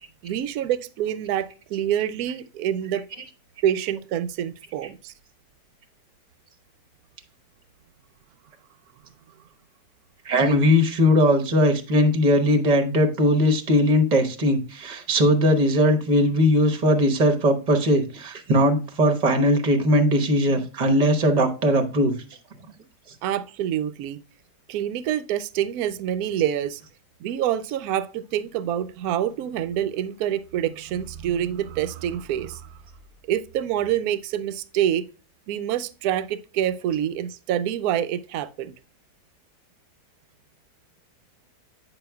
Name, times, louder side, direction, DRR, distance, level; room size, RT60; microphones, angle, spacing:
voice 1, 0.2-3.0 3.6-5.1 23.2-24.2 24.7-26.8 27.2-32.8 33.3-35.0 35.5-38.7, right 10 dB, 70° right, 1.0 m, -26 dB
voice 2, 10.2-22.1, equal, 30° right, 0.9 m, -19 dB
8.9 x 5.5 x 2.3 m
omnidirectional pair, 1.8 m